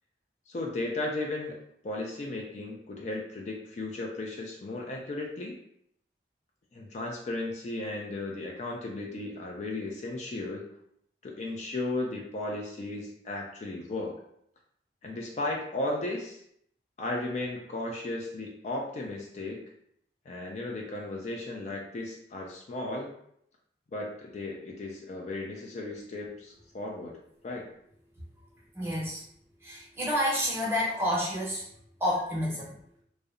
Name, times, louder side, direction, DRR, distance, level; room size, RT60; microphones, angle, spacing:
voice 1, 0.5-1.6 1.8-5.6 6.7-10.7 11.2-14.2 15.0-16.4 17.0-19.6 20.3-23.1 23.9-27.2 27.4-27.7, left 2 dB, 40° left, -1 dB, 0.3 m, -35 dB
voice 2, 28.8-29.2 29.6-31.6 32.0-32.7, equal, 15° right, -6 dB, 0.7 m, -29 dB
2.6 x 2.0 x 2.4 m, 0.71 s
head